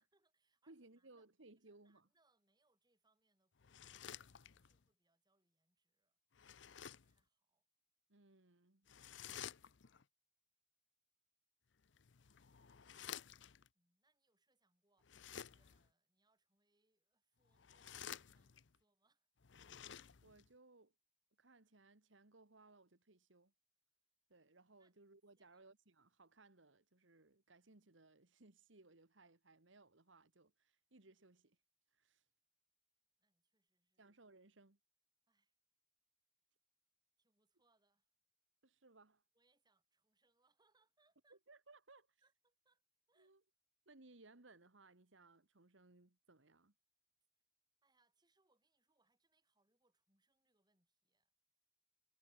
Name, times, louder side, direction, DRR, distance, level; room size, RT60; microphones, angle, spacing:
voice 1, 0.0-1.3 1.6-6.2 6.7-7.7 12.6-13.2 13.7-19.3 24.8-24.9 25.4-25.7 33.2-34.2 35.3-35.6 37.2-38.1 39.3-41.4 42.2-42.8 43.1-43.4 47.8-51.4, right 3 dB, 20° right, 6.8 m, -82 dB
voice 2, 0.7-2.1 8.1-8.9 20.2-20.9 21.4-23.5 24.3-31.6 31.9-32.2 34.0-34.8 38.6-39.2 41.3-42.2 43.2-43.4 43.8-46.7, right 2 dB, 75° right, 1.9 m, -65 dB
sound 1, 3.6-4.8 6.3-7.2 8.9-10.0 11.8-13.7 15.0-15.9 17.5-18.8 19.4-20.5, left 9 dB, 65° left, 0.7 m, -53 dB
head